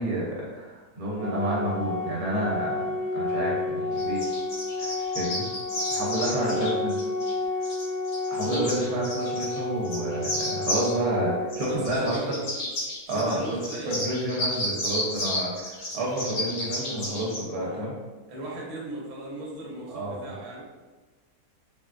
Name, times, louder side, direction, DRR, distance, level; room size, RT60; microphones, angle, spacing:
voice 1, 0.0-4.2 4.8-5.5 5.9-6.9 8.3-12.3 13.1-13.6 13.9-17.9 19.9-20.3, right 1 dB, 80° right, -4 dB, 1.2 m, -29 dB
Organ, 1.2-12.2, left 3 dB, 35° left, 0.7 m, -31 dB
sound 1, 4.0-7.3 7.6-9.6 9.8-10.9 11.5-17.4, left 1 dB, 75° left, 1.4 m, -32 dB
voice 2, 6.3-6.6 8.4-8.7 11.6-12.4 13.0-14.1 17.6-17.8 18.3-20.6, right 2 dB, 65° right, -4 dB, 1.1 m, -36 dB
3.6 x 2.1 x 2.3 m, 1.3 s
omnidirectional pair, 1.6 m